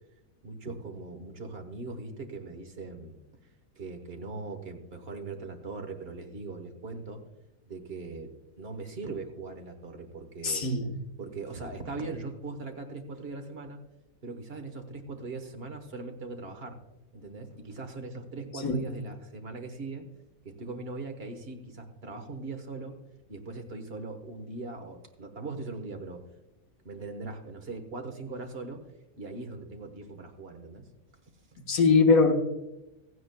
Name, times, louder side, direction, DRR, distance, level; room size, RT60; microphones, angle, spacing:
voice 1, 0.4-3.2 3.8-7.2 7.7-8.3 8.6-10.7 11.2-13.8 14.2-16.8 17.1-20.1 20.4-23.0 23.3-26.2 26.8-28.8 29.2-30.9, right 3 dB, 45° right, 5 dB, 1.4 m, -40 dB
voice 2, 10.4-10.9 18.6-18.8 31.6-32.3, left 4 dB, 75° left, 2 dB, 1.7 m, -22 dB
16.0 x 15.0 x 2.2 m, 0.97 s
omnidirectional pair, 1.5 m